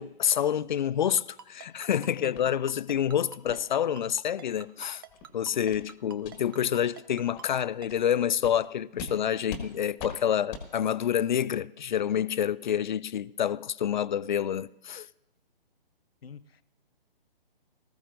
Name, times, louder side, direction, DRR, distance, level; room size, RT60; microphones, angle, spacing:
voice 1, 0.0-5.0 5.3-15.1, left 9 dB, 50° left, 0.4 m, -28 dB
Ringtone, 1.2-7.9, right 7 dB, 25° right, 0.4 m, -46 dB
voice 2, 1.9-2.5 16.2-16.6, left 7 dB, 80° left, 0.7 m, -43 dB
sound 1, 2.3-2.5 2.9-3.0 3.4-3.6 4.0-4.1 4.6-4.7 5.1-5.3 5.7-5.9 6.2-6.3 6.8-6.9 7.3-7.5 7.9-8.0 8.4-8.6 9.0-9.1 9.5-9.7 10.0-10.1 10.5-10.7, left 4 dB, 20° left, 1.5 m, -41 dB
19.5 x 14.5 x 2.5 m
figure-of-eight pair, 145°, 30 cm